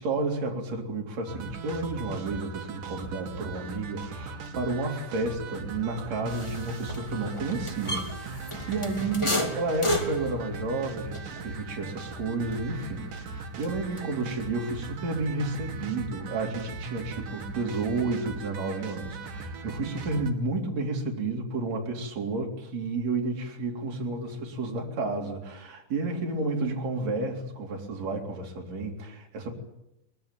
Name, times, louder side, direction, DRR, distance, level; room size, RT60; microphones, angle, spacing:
voice 1, 0.0-29.5, right 3 dB, 50° right, 0 dB, 4.7 m, -31 dB
sound 1, 1.3-20.3, right 4 dB, 70° right, 3.8 m, -39 dB
sound 2, 6.3-14.4 14.7-15.8, equal, 10° left, 2.0 m, -35 dB
23.5 x 22.0 x 9.2 m, 0.85 s
omnidirectional pair, 3.9 m